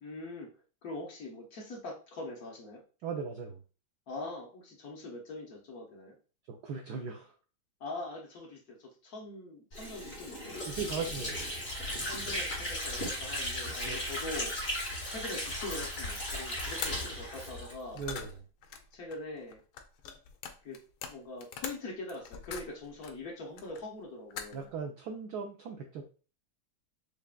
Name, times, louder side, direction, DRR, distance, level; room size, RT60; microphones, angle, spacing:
voice 1, 0.0-0.5 0.8-2.8 4.1-6.2 7.8-11.1 12.0-18.0 18.9-19.6 20.6-20.8 21.1-24.7, left 2 dB, 55° left, -1 dB, 1.2 m, -43 dB
voice 2, 3.0-3.6 6.5-7.3 10.7-11.5 13.8-14.0 17.9-18.4 24.5-26.0, right 5 dB, 90° right, 4 dB, 0.8 m, -38 dB
Water / Sink (filling or washing), 9.7-18.3, left 1 dB, 30° left, 2.4 m, -36 dB
sound 1, 16.8-16.9 17.8-23.2 23.6-24.0 24.3-24.7, left 7 dB, 80° left, 1.4 m, -43 dB
4.8 x 3.3 x 2.2 m, 0.36 s
omnidirectional pair, 2.3 m